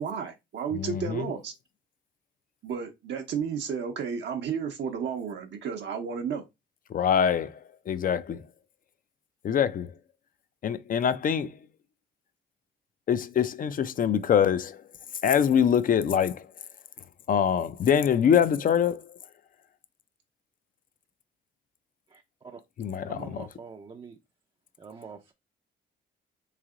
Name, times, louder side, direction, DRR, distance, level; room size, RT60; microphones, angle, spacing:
voice 1, 0.0-1.5 2.6-6.5, right 6 dB, 65° right, 0.7 m, -32 dB
voice 2, 0.7-1.3 6.9-7.6 7.9-8.4 9.4-9.9 10.6-11.5 13.1-14.8 15.2-16.4 17.3-19.0 22.8-23.4, left 8 dB, 45° left, 0.4 m, -24 dB
voice 3, 22.1-22.6 23.0-24.2 24.8-25.3, right 5 dB, 25° right, 0.5 m, -45 dB
3.2 x 2.8 x 3.7 m
cardioid pair, 90°, 20 cm